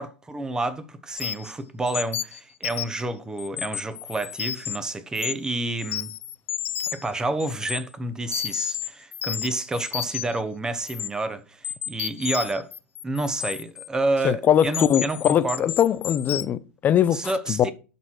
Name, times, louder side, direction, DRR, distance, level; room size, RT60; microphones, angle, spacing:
voice 1, 0.0-6.1 6.9-12.7 13.0-15.6 17.1-17.7, right 2 dB, 10° right, 1.0 m, -29 dB
sound 1, 1.2-1.5 1.9-3.0 3.4-4.8 5.2-5.5 5.8-7.1 7.4-7.8 8.3-10.4 10.9-11.1 11.6-13.9 14.6-16.4, left 10 dB, 80° left, 0.7 m, -31 dB
voice 2, 14.2-17.7, left 10 dB, 25° left, 0.6 m, -21 dB
12.0 x 4.1 x 4.6 m
hypercardioid pair, 125°, 7 cm